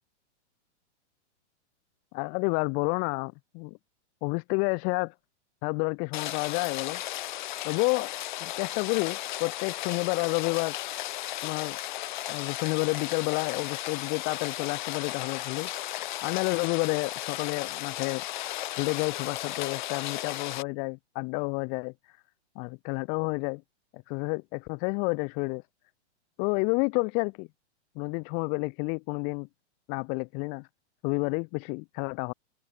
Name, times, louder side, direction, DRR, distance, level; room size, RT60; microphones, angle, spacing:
voice 1, 2.1-3.8 4.2-5.1 5.6-7.0 7.6-8.1 8.4-10.8 11.4-11.8 12.3-15.7 16.2-18.2 18.8-22.2 22.6-23.6 23.9-25.6 26.4-27.5 28.0-29.5 29.9-30.7 31.0-32.3, left 35 dB, 25° left, 1.8 m, -30 dB
Rain, 6.1-20.6, left 15 dB, 40° left, 3.1 m, -35 dB
open air
hypercardioid pair, 170°, 35 cm